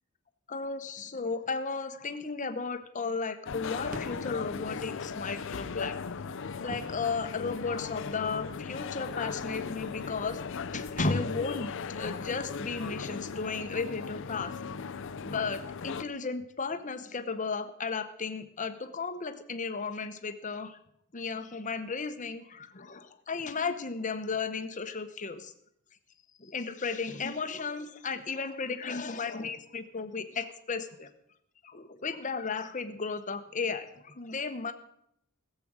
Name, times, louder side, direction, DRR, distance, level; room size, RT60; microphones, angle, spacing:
voice 1, 0.5-6.0 6.6-10.4 10.7-14.5 15.2-20.8 21.1-25.5 26.4-31.1 31.6-34.7, left 4 dB, 35° left, 10 dB, 0.9 m, -34 dB
sound 1, 3.5-16.0, left 5 dB, 60° left, 0.5 m, -38 dB
sound 2, 3.8-14.4, right 1 dB, 40° right, 1.2 m, -52 dB
15.5 x 7.7 x 6.2 m, 0.74 s
head